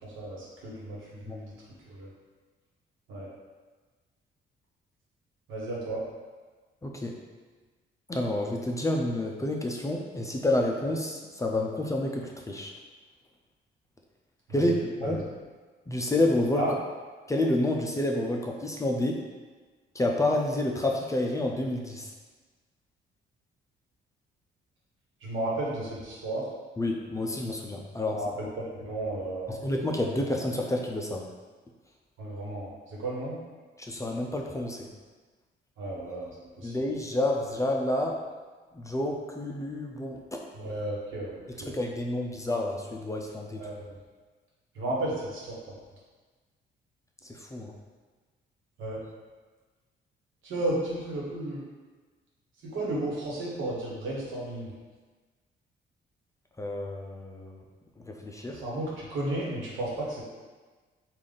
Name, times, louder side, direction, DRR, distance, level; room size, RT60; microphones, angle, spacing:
voice 1, 0.0-1.4 1.9-2.1 3.1-3.3 5.5-6.0 14.5-15.1 16.6-16.7 25.2-26.5 28.1-29.6 32.2-33.4 35.8-36.3 36.6-36.7 40.5-41.7 43.6-43.7 44.7-45.6 48.8-49.0 50.4-51.6 52.6-54.7 58.6-60.2, right 1 dB, 75° right, -5 dB, 1.2 m, -33 dB
voice 2, 6.8-7.2 8.1-12.7 14.5-14.7 15.0-15.2 15.9-16.6 17.3-19.2 19.9-22.1 26.8-28.2 29.5-31.3 33.8-34.9 36.6-38.2 38.7-40.7 41.7-43.6 47.3-47.7 56.6-57.6 58.1-58.6, left 1 dB, 15° left, 0 dB, 0.4 m, -29 dB
3.4 x 2.5 x 3.9 m, 1.4 s
cardioid pair, 90°, 20 cm